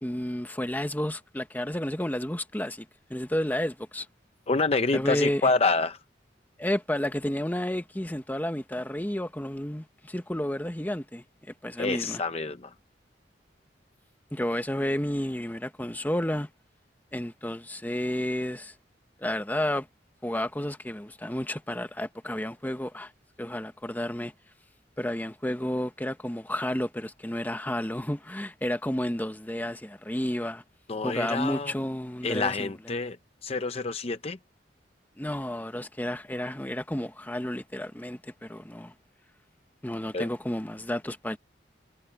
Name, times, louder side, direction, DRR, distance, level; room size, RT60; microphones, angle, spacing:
voice 1, 0.0-4.1 4.9-5.5 6.6-11.2 11.6-12.2 14.3-16.5 17.1-18.7 19.2-19.9 20.2-23.1 23.4-24.3 25.0-30.6 31.0-32.7 35.2-38.9 39.8-41.4, left 1 dB, 10° left, 1.0 m, -31 dB
voice 2, 4.5-6.0 11.8-12.7 30.9-31.7 32.2-33.2 33.4-34.4 40.1-40.3, left 3 dB, 35° left, 0.6 m, -27 dB
head